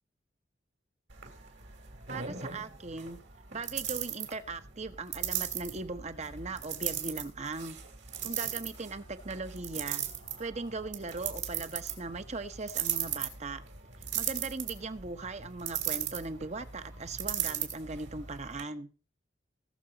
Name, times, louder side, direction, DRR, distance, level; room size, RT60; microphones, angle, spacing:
sound 1, 1.1-18.6, right 10 dB, 65° right, 3.0 m, -38 dB
voice 1, 2.1-3.2 3.5-7.8 8.2-10.0 10.4-13.6 14.1-18.9, right 3 dB, 35° right, 1.0 m, -39 dB
19.5 x 6.8 x 4.0 m
head